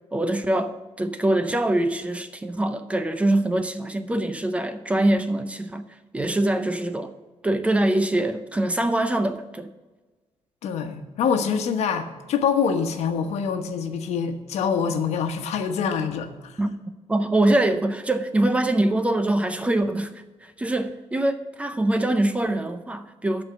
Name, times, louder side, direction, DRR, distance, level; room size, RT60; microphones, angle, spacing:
voice 1, 0.1-5.8 6.1-7.1 7.4-9.7 16.6-16.8 17.1-20.1 20.4-23.4, right 1 dB, 10° right, 0.5 m, -23 dB
voice 2, 10.6-16.6, left 6 dB, 80° left, 1.1 m, -25 dB
13.0 x 4.4 x 7.6 m
cardioid pair, 170°, 11 cm